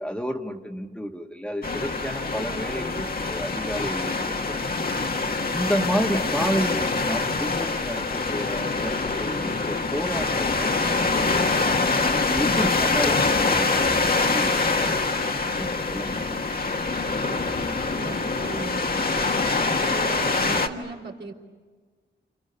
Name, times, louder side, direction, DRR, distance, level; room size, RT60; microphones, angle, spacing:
voice 1, 0.0-4.6 5.5-11.4 12.0-15.1 15.6-16.4, equal, 5° left, 2 dB, 1.6 m, -31 dB
sound 1, 1.6-20.7, left 3 dB, 50° left, 1.7 m, -25 dB
voice 2, 17.0-17.6 18.0-18.8 19.8-21.3, right 3 dB, 65° right, 1 dB, 4.1 m, -37 dB
29.0 x 28.0 x 6.9 m, 1.4 s
wide cardioid pair, 80°, 19 cm